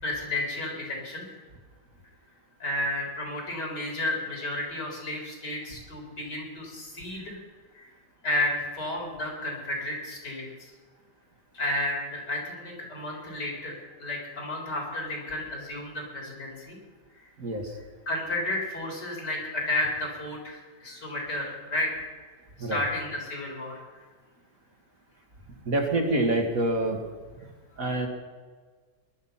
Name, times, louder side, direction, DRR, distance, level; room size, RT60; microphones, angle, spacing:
voice 1, 0.0-1.3 2.6-7.4 7.7-7.9 8.2-10.7 11.5-16.8 18.1-21.9 22.6-23.8, left 1 dB, 60° left, 0 dB, 4.8 m, -32 dB
voice 2, 17.4-17.8 22.6-22.8 25.7-27.0 27.8-28.1, right 2 dB, 45° right, 2 dB, 2.1 m, -26 dB
19.5 x 12.0 x 5.7 m, 1.5 s
omnidirectional pair, 2.1 m